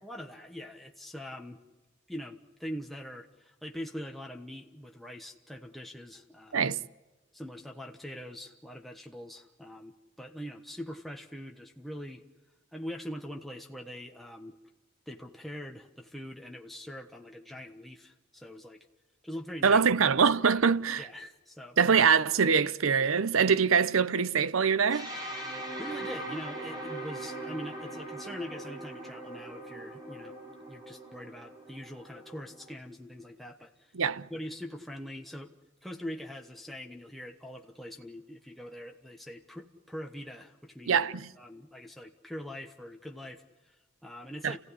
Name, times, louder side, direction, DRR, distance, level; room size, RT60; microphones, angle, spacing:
voice 1, 0.0-1.6 2.1-6.6 7.3-12.2 12.7-14.6 15.1-18.9 19.2-19.8 20.2-20.3 21.0-22.0 25.8-30.4 30.7-33.9 34.3-35.5 35.8-41.0 41.4-44.6, equal, ahead, 1.2 m, -43 dB
voice 2, 19.6-21.0 21.8-25.1 33.9-34.3 40.9-41.3 44.4-44.6, right 6 dB, 90° right, 0.7 m, -24 dB
sound 1, 24.9-32.7, right 1 dB, 20° right, 4.9 m, -41 dB
29.5 x 16.5 x 9.7 m
head